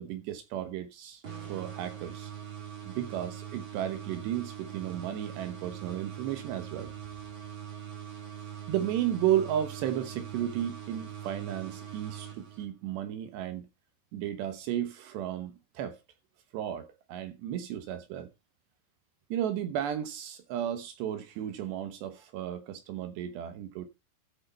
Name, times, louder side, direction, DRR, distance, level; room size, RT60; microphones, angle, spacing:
voice 1, 0.0-2.3 2.9-6.9 8.4-13.7 14.1-16.0 16.5-18.3 19.3-23.9, right 11 dB, 70° right, 2.8 m, -34 dB
sound 1, 1.2-13.0, right 9 dB, 30° right, 3.0 m, -42 dB
13.5 x 6.3 x 4.3 m
omnidirectional pair, 5.9 m